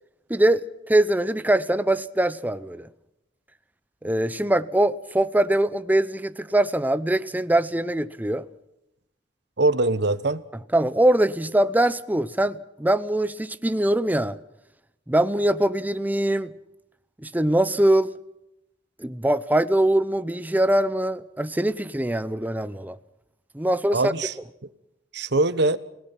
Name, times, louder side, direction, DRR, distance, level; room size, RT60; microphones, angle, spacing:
voice 1, 0.3-2.9 4.0-8.5 10.7-14.4 15.1-16.5 17.2-18.1 19.0-23.0 23.5-24.1, right 1 dB, 10° right, 0.7 m, -22 dB
voice 2, 9.6-10.4 23.9-24.3 25.1-25.8, right 2 dB, 65° right, 1.1 m, -22 dB
29.0 x 17.5 x 5.9 m
head